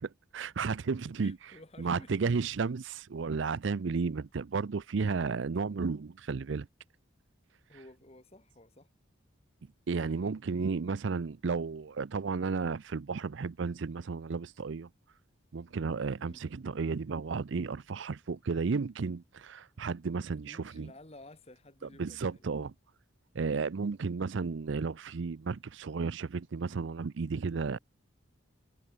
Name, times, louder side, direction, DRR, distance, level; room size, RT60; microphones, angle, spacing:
voice 1, 0.3-1.4 1.8-6.7 9.9-14.9 15.5-20.9 22.0-22.7 23.3-27.8, right 4 dB, 65° right, 0.5 m, -33 dB
voice 2, 1.2-2.1 7.7-8.9 10.0-10.3 16.2-16.4 20.4-22.5, left 2 dB, 30° left, 2.0 m, -54 dB
head